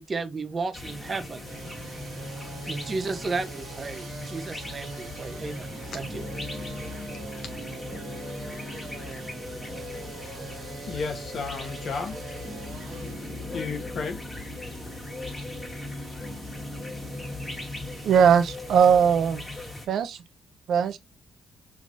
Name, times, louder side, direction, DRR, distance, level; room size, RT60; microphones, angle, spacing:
voice 1, 0.0-1.4 2.1-2.2 2.7-6.2 6.8-6.9, right 4 dB, 35° right, 0.8 m, -33 dB
sound 1, 0.7-19.9, left 2 dB, 20° left, 1.5 m, -39 dB
Passing Summer Storm, 0.8-18.2, right 1 dB, 10° right, 1.3 m, -45 dB
sound 2, 1.4-19.7, right 5 dB, 85° right, 1.2 m, -45 dB
voice 2, 10.9-12.2 13.5-14.2, left 5 dB, 55° left, 0.8 m, -32 dB
voice 3, 18.0-19.4 19.9-20.2 20.7-21.0, right 7 dB, 70° right, 0.6 m, -20 dB
4.9 x 3.4 x 2.5 m
cardioid pair, 90°, 0 cm